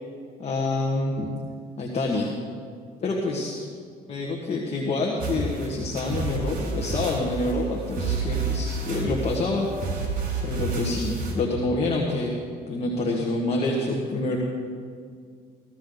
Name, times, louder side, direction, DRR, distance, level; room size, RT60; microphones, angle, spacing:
voice 1, 0.4-1.3 1.8-2.3 3.0-3.6 4.1-9.7 10.4-12.3 12.7-14.4, left 2 dB, 40° left, -1 dB, 1.7 m, -27 dB
sound 1, 5.2-11.3, right 4 dB, 60° right, 4.2 m, -30 dB
16.5 x 13.5 x 4.0 m, 2.1 s
cardioid pair, 110°, 17 cm